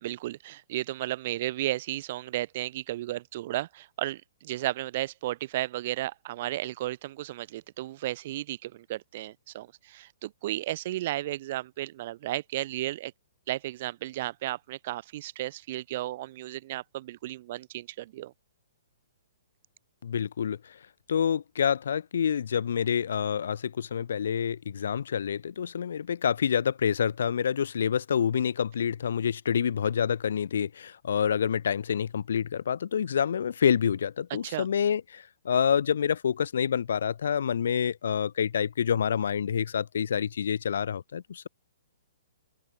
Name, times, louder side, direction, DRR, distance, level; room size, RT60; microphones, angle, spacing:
voice 1, 0.0-13.1 13.5-18.3 34.4-34.7, right 15 dB, 30° right, 1.2 m, -34 dB
voice 2, 20.0-20.8 21.1-41.5, left 8 dB, 60° left, 0.3 m, -27 dB
open air
hypercardioid pair, 175°, 0 cm